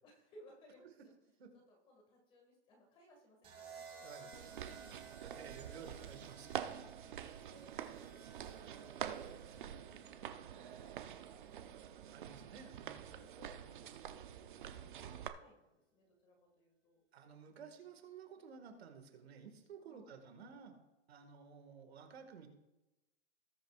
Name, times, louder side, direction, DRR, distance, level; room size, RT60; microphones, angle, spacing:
voice 1, 0.0-0.9 1.5-5.0 5.7-6.1 6.7-12.7 13.0-17.0 19.8-20.1, left 1 dB, 15° left, 0 dB, 1.9 m, -65 dB
sound 1, 3.4-11.6 12.8-13.2, right 5 dB, 15° right, 2.0 m, -57 dB
sound 2, 4.3-15.3, right 9 dB, 45° right, 0.7 m, -47 dB
voice 2, 5.2-6.5 12.1-13.1 17.1-20.8 21.1-22.5, right 6 dB, 60° right, 6 dB, 1.9 m, -54 dB
19.0 x 7.9 x 2.4 m, 1.0 s
hypercardioid pair, 170°, 35 cm